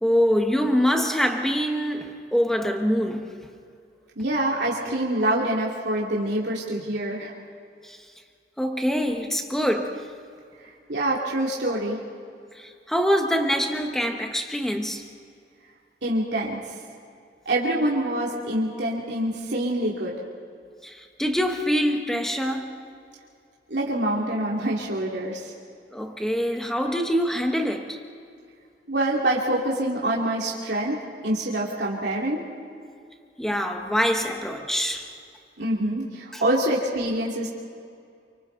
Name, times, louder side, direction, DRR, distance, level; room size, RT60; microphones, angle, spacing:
voice 1, 0.0-3.5 7.8-8.0 8.6-10.1 12.5-15.1 20.8-22.8 25.9-28.0 33.4-35.1 36.3-36.4, equal, 5° left, 1.5 m, -25 dB
voice 2, 4.2-7.3 10.9-12.0 16.0-16.6 17.4-20.2 23.7-25.5 28.9-32.4 35.6-37.5, right 1 dB, 80° right, 2.8 m, -25 dB
28.0 x 25.0 x 4.0 m
head